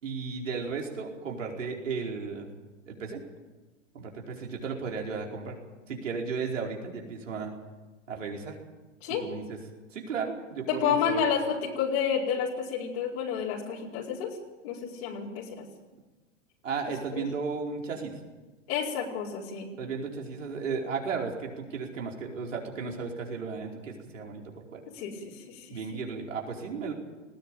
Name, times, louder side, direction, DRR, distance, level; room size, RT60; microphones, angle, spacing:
voice 1, 0.0-2.5 2.9-3.2 3.9-5.6 5.9-7.5 8.1-8.5 9.1-9.6 9.9-11.2 16.6-18.1 19.8-24.8 25.7-26.9, right 5 dB, 80° right, 0 dB, 4.7 m, -34 dB
voice 2, 10.7-14.4 14.6-15.7 17.2-17.3 18.7-19.7 24.9-25.8, left 7 dB, 55° left, -3 dB, 4.7 m, -30 dB
20.0 x 15.5 x 9.2 m, 1.2 s
hypercardioid pair, 115°, 38 cm